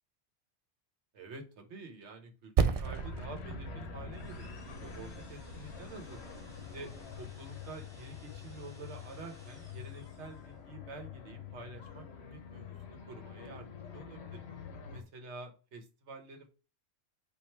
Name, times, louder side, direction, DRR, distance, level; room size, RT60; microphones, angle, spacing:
voice 1, 1.1-2.5 2.8-6.4 6.7-14.4 14.9-16.5, right 3 dB, 90° right, 5 dB, 1.3 m, -48 dB
Percussion, 2.6-7.4, right 6 dB, 70° right, 0.3 m, -36 dB
sound 1, 2.8-15.0, left 8 dB, 70° left, 1.0 m, -47 dB
sound 2, 4.1-10.6, left 1 dB, 5° left, 1.9 m, -59 dB
4.7 x 2.6 x 4.4 m, 0.34 s
omnidirectional pair, 1.1 m